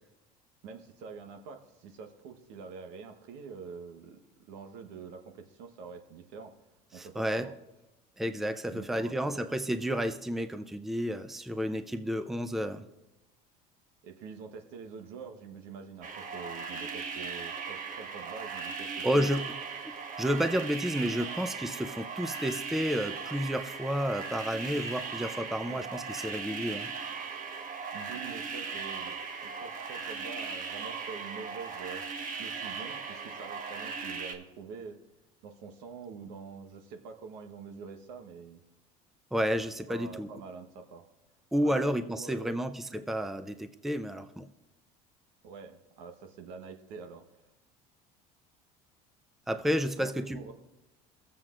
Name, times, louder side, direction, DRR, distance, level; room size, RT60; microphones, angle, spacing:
voice 1, 0.6-6.5 6.9-7.5 8.7-9.4 14.0-19.3 25.6-25.8 27.9-32.1 32.4-35.0 35.4-38.6 39.9-41.0 41.6-41.8 42.1-42.6 45.4-47.2 50.0-50.5, right 5 dB, 70° right, 6 dB, 1.1 m, -46 dB
voice 2, 6.9-7.5 8.2-12.8 19.0-19.4 20.2-26.9 39.3-40.3 41.5-44.5 49.5-50.5, equal, ahead, 10 dB, 0.5 m, -31 dB
sound 1, 16.0-34.3, right 5 dB, 45° right, 1.2 m, -38 dB
17.0 x 7.5 x 2.5 m, 0.99 s
supercardioid pair, 90°, 19 cm